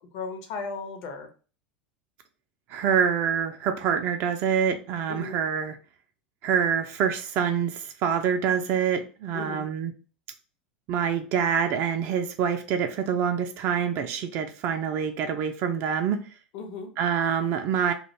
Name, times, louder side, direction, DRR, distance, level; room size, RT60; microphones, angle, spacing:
voice 1, 0.1-1.3 5.1-5.4 9.3-9.7 16.5-16.9, left 4 dB, 50° left, 0.6 m, -36 dB
voice 2, 2.7-5.7 6.4-9.9 10.9-16.2 17.0-17.9, right 7 dB, 45° right, 0.3 m, -26 dB
2.4 x 2.2 x 2.9 m
figure-of-eight pair, 80°, 5 cm